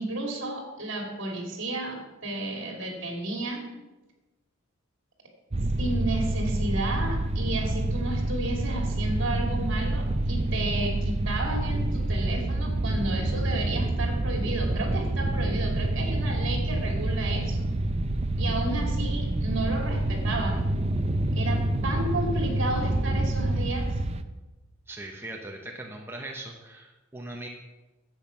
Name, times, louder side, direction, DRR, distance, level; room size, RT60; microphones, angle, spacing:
voice 1, 0.0-3.6 5.8-17.7 18.4-20.6 21.3-23.9, right 2 dB, 60° right, 2 dB, 2.9 m, -32 dB
sound 1, 5.5-24.2, right 1 dB, 30° right, 0.6 m, -27 dB
voice 2, 24.9-27.5, right 2 dB, 10° right, 0 dB, 0.9 m, -40 dB
10.5 x 8.0 x 5.9 m, 1.1 s
head